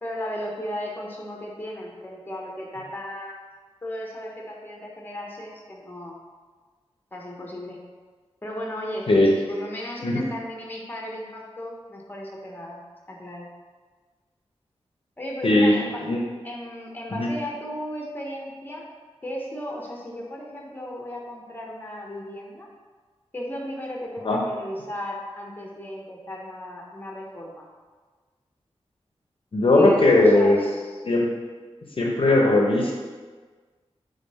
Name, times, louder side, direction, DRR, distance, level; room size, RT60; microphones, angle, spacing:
voice 1, 0.0-3.4 3.8-6.2 7.1-7.8 8.4-12.8 13.1-13.5 15.2-16.1 16.4-18.9 19.2-22.7 23.3-27.7 29.7-31.0, equal, 20° left, -2 dB, 0.8 m, -35 dB
voice 2, 9.1-9.4 10.0-10.3 15.4-15.7 16.0-16.2 17.2-17.3 24.2-24.4 29.5-30.6 31.0-31.3 32.0-32.9, left 2 dB, 55° left, -2 dB, 0.6 m, -18 dB
3.7 x 3.6 x 4.1 m, 1.4 s
wide cardioid pair, 80°, 11 cm